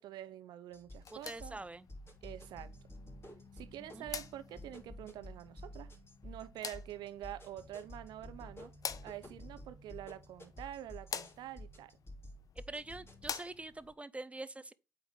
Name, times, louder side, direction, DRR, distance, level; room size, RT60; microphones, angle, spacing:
voice 1, 0.0-1.6 2.2-2.7 3.5-5.9 6.2-8.7 9.0-11.9, right 12 dB, 65° right, 0.7 m, -46 dB
sound 1, 0.7-13.3, left 1 dB, 30° left, 3.1 m, -52 dB
sound 2, 0.9-13.9, left 7 dB, 50° left, 0.7 m, -49 dB
voice 2, 1.1-1.9 3.9-4.1 12.7-14.7, right 2 dB, 15° right, 0.7 m, -45 dB
8.3 x 4.7 x 3.5 m
hypercardioid pair, 40°, 8 cm